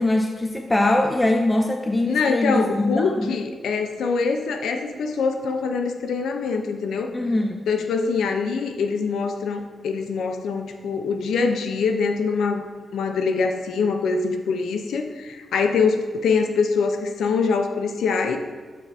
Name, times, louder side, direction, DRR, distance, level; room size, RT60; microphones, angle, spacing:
voice 1, 0.0-3.4 7.1-7.6, left 1 dB, 20° left, 3 dB, 0.4 m, -22 dB
voice 2, 2.1-7.1 7.7-12.7 12.9-18.4, left 5 dB, 90° left, 6 dB, 0.5 m, -24 dB
7.0 x 4.2 x 3.4 m, 1.4 s
cardioid pair, 80°, 0 cm